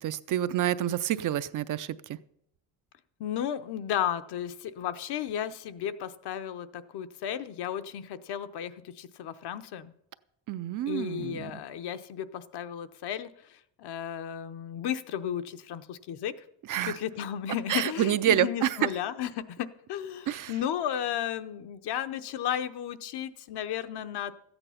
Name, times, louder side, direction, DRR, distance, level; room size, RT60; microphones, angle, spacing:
voice 1, 0.0-2.2 10.5-11.5 16.7-17.0 17.7-18.9 20.3-20.5, right 11 dB, 45° right, 13 dB, 0.4 m, -28 dB
voice 2, 3.2-9.9 10.9-16.3 16.8-24.3, left 10 dB, 60° left, 11 dB, 0.8 m, -34 dB
14.0 x 8.9 x 5.7 m, 0.75 s
cardioid pair, 140°, 44 cm